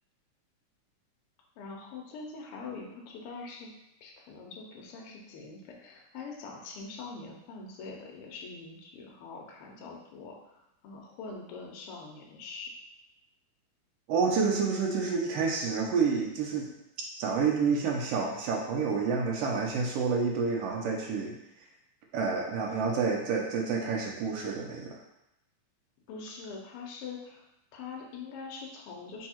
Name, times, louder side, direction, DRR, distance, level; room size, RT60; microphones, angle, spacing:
voice 1, 1.6-3.7 4.0-10.4 10.8-12.7 26.1-27.4 27.7-29.3, left 4 dB, 75° left, -1 dB, 1.3 m, -43 dB
voice 2, 14.1-16.7 17.2-21.3 22.1-25.0, right 5 dB, 90° right, -1 dB, 1.4 m, -29 dB
4.5 x 2.7 x 4.3 m, 0.87 s
omnidirectional pair, 3.5 m